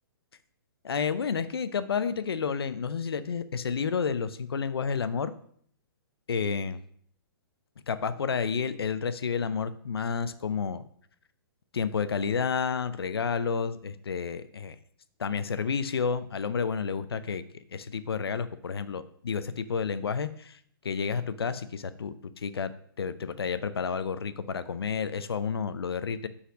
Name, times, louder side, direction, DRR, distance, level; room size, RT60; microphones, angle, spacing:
voice 1, 0.9-5.3 6.3-6.8 7.9-10.8 11.7-14.8 15.2-20.6 20.8-22.7 23.0-26.3, left 6 dB, 85° left, 13 dB, 0.5 m, -30 dB
5.7 x 4.2 x 5.0 m, 0.62 s
hypercardioid pair, 130°, 13 cm